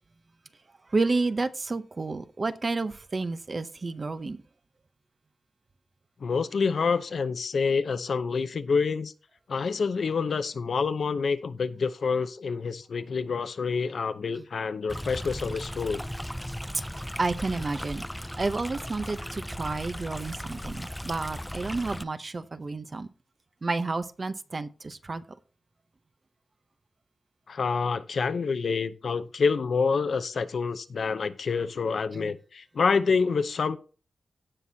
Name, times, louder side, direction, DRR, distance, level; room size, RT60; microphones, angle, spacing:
voice 1, 0.9-4.4 17.2-18.1 18.4-23.1 23.6-25.2 32.1-32.3, right 3 dB, 35° right, 0.7 m, -30 dB
voice 2, 6.2-9.1 9.5-16.0 27.5-33.8, left 5 dB, 65° left, 0.7 m, -27 dB
Stream, 14.9-22.0, equal, 5° left, 0.3 m, -37 dB
16.5 x 6.1 x 2.8 m
wide cardioid pair, 125°, 0 cm